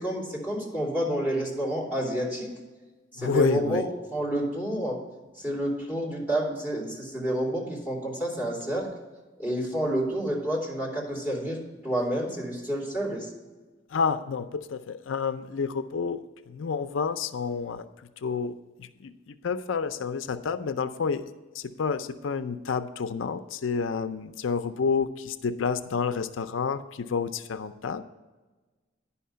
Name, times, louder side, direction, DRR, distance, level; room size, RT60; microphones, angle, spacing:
voice 1, 0.0-2.5 3.1-3.8 4.1-5.0 5.4-8.9 9.4-11.6 11.8-13.3, right 1 dB, 10° right, -4 dB, 3.0 m, -29 dB
voice 2, 3.2-3.9 13.9-21.3 21.5-28.0, left 5 dB, 85° left, 11 dB, 0.5 m, -29 dB
10.0 x 5.7 x 5.6 m, 1.2 s
head